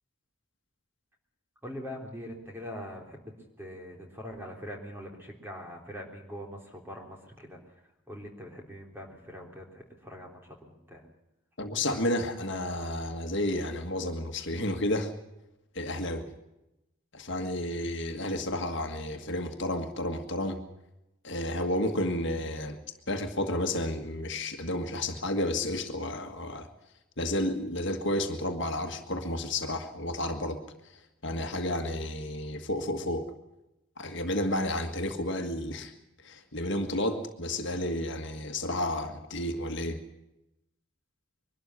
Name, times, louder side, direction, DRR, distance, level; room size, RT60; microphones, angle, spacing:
voice 1, 1.6-3.2 3.6-7.6 8.1-10.3 10.6-11.0, equal, 10° right, 1 dB, 3.5 m, -42 dB
voice 2, 11.6-15.1 15.8-16.3 17.1-20.6 21.2-22.8 23.1-26.7 27.2-30.6 31.2-33.3 34.0-35.9 36.2-40.0, left 1 dB, 55° left, 5 dB, 1.8 m, -31 dB
23.0 x 12.5 x 9.9 m, 0.92 s
head